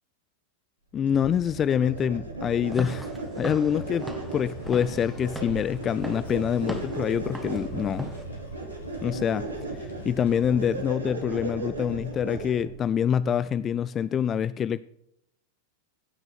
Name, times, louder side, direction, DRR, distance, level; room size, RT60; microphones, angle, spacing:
voice 1, 0.9-3.1 3.4-8.1 9.0-9.5 9.8-14.8, left 8 dB, 25° left, 0.3 m, -26 dB
sound 1, 1.1-12.8, right 2 dB, 80° right, 2.3 m, -36 dB
Walk footsteps / Siren, 2.6-8.2, right 1 dB, 5° right, 1.6 m, -40 dB
sound 2, 4.5-10.7, left 1 dB, 70° left, 2.2 m, -48 dB
16.0 x 6.2 x 4.2 m
figure-of-eight pair, 90°, 0 cm